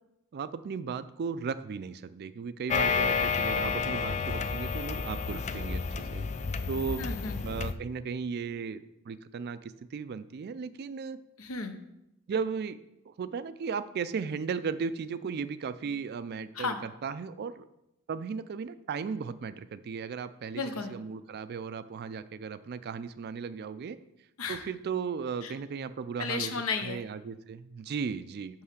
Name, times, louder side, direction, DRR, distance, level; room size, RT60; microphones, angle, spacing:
voice 1, 0.3-6.2 6.7-7.1 7.4-11.2 12.3-12.8 13.1-17.6 18.1-20.6 20.9-24.0 24.5-28.6, right 5 dB, 50° right, 14 dB, 0.3 m, -36 dB
sound 1, 2.7-7.7, left 5 dB, 30° left, 0.3 m, -30 dB
voice 2, 7.0-7.4 11.4-11.7 16.5-16.8 20.5-20.9 24.4-24.6 25.4-25.5 26.2-27.0, left 4 dB, 75° left, 7 dB, 0.9 m, -33 dB
5.6 x 5.5 x 6.5 m, 0.86 s
head